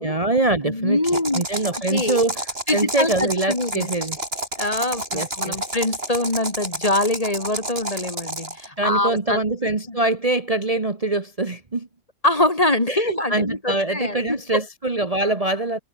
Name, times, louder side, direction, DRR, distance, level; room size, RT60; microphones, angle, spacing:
voice 1, 0.0-1.0 1.3-4.2 5.1-5.6 8.8-11.9 12.9-15.8, right 2 dB, 25° right, 1.4 m, -24 dB
voice 2, 0.6-1.4 1.7-2.2 2.7-3.9 4.6-9.4 9.9-10.0 12.2-14.6, left 1 dB, 25° left, 2.4 m, -24 dB
sound 1, 1.1-8.7, right 1 dB, 40° right, 8.3 m, -30 dB
omnidirectional pair, 1.5 m